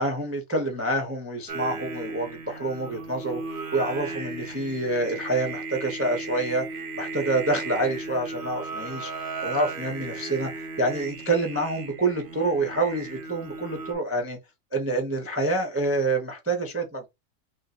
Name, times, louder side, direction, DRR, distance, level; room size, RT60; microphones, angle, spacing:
voice 1, 0.0-3.4 3.7-6.6 7.0-14.4 14.7-17.1, right 2 dB, 15° right, 0.6 m, -27 dB
Singing, 1.5-13.9, right 3 dB, 40° right, 0.9 m, -36 dB
5.6 x 2.4 x 2.9 m
omnidirectional pair, 1.8 m